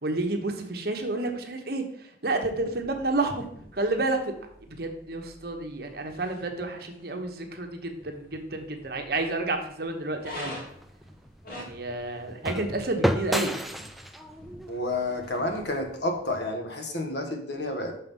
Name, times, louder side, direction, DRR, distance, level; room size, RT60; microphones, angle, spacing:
voice 1, 0.0-1.8 2.2-3.4 3.7-4.2 4.7-10.6 11.5-13.5, right 2 dB, 60° right, 4 dB, 1.1 m, -30 dB
sound 1, 2.6-15.6, left 1 dB, 55° left, 2.3 m, -48 dB
sound 2, 10.2-16.4, equal, ahead, 0.4 m, -33 dB
voice 2, 14.7-18.0, left 2 dB, 70° left, 4 dB, 1.4 m, -30 dB
6.3 x 5.7 x 5.4 m, 0.71 s
head